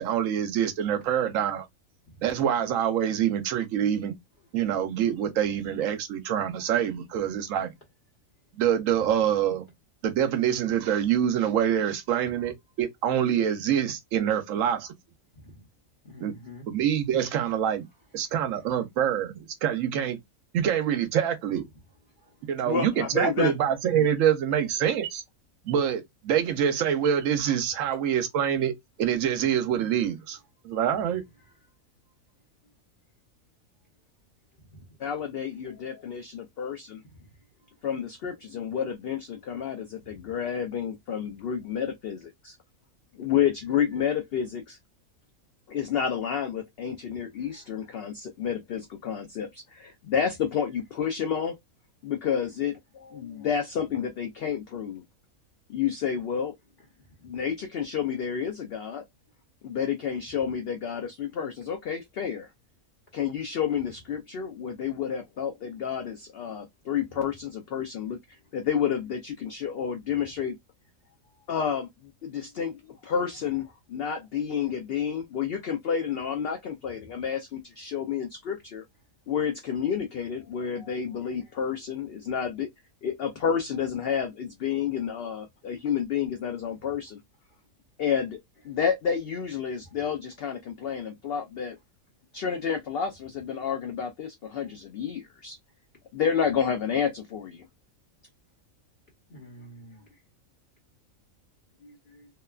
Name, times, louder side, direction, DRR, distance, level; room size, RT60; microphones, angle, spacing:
voice 1, 0.0-1.7 2.2-4.2 4.5-7.7 8.5-9.6 10.0-14.9 16.2-16.3 16.7-17.9 18.1-20.2 20.5-21.6 22.5-25.2 25.6-28.7 29.0-30.4 30.6-31.2, right 9 dB, 75° right, 1.0 m, -25 dB
voice 2, 16.0-16.7 99.3-100.1 101.8-102.3, equal, 40° left, 1.0 m, -47 dB
voice 3, 22.6-23.5 23.9-24.1 35.0-37.0 37.8-42.6 43.1-44.8 45.7-51.6 52.0-55.0 55.7-56.5 57.2-59.0 59.6-62.5 63.1-68.2 68.5-70.6 71.5-78.8 79.3-82.7 83.0-87.2 88.0-88.4 88.6-91.8 92.3-95.6 96.1-97.6, left 7 dB, 65° left, 0.6 m, -30 dB
2.9 x 2.1 x 2.3 m
omnidirectional pair, 1.4 m